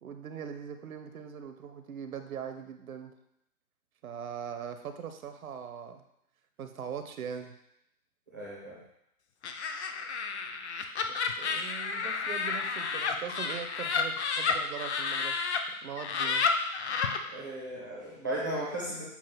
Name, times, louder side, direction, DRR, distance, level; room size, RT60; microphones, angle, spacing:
voice 1, 0.0-3.1 4.0-6.0 6.6-7.6 11.0-15.5 15.8-16.5, right 7 dB, 65° right, 8 dB, 0.7 m, -41 dB
voice 2, 8.3-8.8 17.3-19.0, right 1 dB, 15° right, -6 dB, 0.4 m, -36 dB
Laughter, 9.4-15.6 16.0-17.2, left 5 dB, 50° left, 0.6 m, -31 dB
7.2 x 2.4 x 5.7 m, 0.79 s
hypercardioid pair, 150°, 45 cm